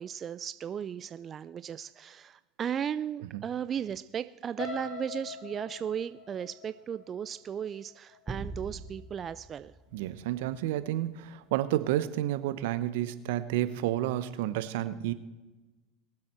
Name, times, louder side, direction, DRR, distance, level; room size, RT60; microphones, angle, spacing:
voice 1, 0.0-9.7, right 8 dB, 35° right, 14 dB, 0.4 m, -36 dB
sound 1, 4.6-8.5 9.0-9.3 9.7-9.8, left 5 dB, 60° left, 3.9 m, -43 dB
sound 2, 8.3-10.9, right 3 dB, 20° right, 1.1 m, -43 dB
voice 2, 9.9-15.1, right 13 dB, 75° right, 13 dB, 0.9 m, -30 dB
22.0 x 7.6 x 4.4 m, 1.1 s
hypercardioid pair, 90°, 0 cm